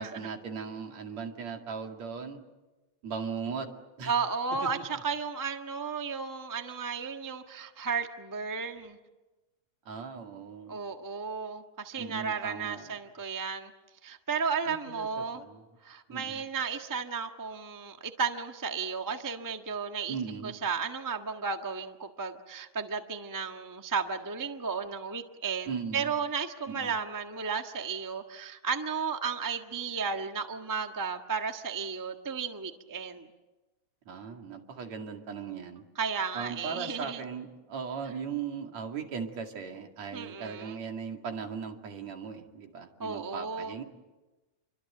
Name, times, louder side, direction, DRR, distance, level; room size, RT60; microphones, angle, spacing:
voice 1, 0.0-2.4 3.0-4.1 4.6-4.8 9.9-10.8 12.0-12.9 14.7-15.6 16.1-16.4 20.1-20.5 25.7-26.1 26.7-27.0 34.1-35.9 36.3-43.8, right 6 dB, 65° right, 3 dB, 3.5 m, -38 dB
voice 2, 4.1-9.0 10.7-13.7 14.0-15.4 15.8-20.2 20.4-33.3 35.9-37.2 40.1-40.8 43.0-43.7, right 5 dB, 25° right, 5 dB, 0.4 m, -34 dB
28.5 x 24.5 x 7.9 m, 1.1 s
omnidirectional pair, 3.4 m